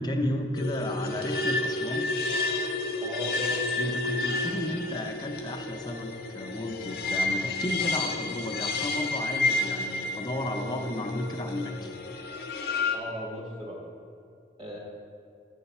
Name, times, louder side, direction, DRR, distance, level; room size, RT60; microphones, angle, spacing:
voice 1, 0.0-2.1 3.8-11.9, left 1 dB, 25° left, 4 dB, 0.5 m, -33 dB
sound 1, 0.6-13.0, left 3 dB, 60° left, 0.7 m, -30 dB
voice 2, 3.0-3.6 12.9-13.8 14.6-14.8, equal, 25° right, -4 dB, 1.7 m, -37 dB
8.6 x 4.0 x 5.4 m, 2.4 s
head